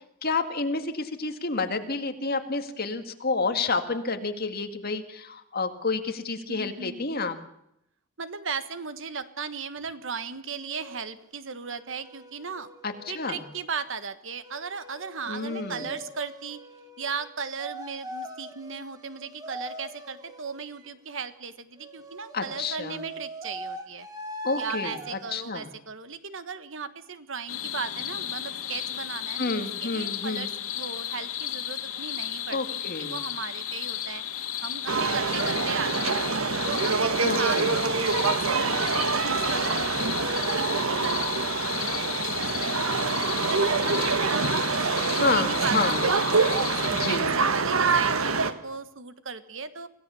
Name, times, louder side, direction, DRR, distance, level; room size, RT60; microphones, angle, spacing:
voice 1, 0.2-7.4 12.8-13.4 15.3-15.9 22.3-23.0 24.4-25.7 29.4-30.5 32.5-33.2 37.2-37.8 45.1-46.1 46.9-47.3, left 3 dB, 45° left, 7 dB, 2.0 m, -29 dB
voice 2, 6.5-7.1 8.2-12.7 13.1-16.6 17.0-24.1 24.6-34.2 34.6-36.3 36.7-44.5 44.8-46.2 46.6-49.9, right 5 dB, 65° right, 12 dB, 1.4 m, -37 dB
sound 1, 10.6-11.0 11.8-13.6 14.4-17.3 17.6-20.9 21.8-25.4, right 1 dB, 20° right, 2.2 m, -41 dB
sound 2, 27.5-47.2, left 11 dB, 85° left, 2.1 m, -34 dB
sound 3, 34.9-48.5, right 4 dB, 85° right, 1.4 m, -26 dB
26.0 x 16.5 x 7.0 m, 0.77 s
head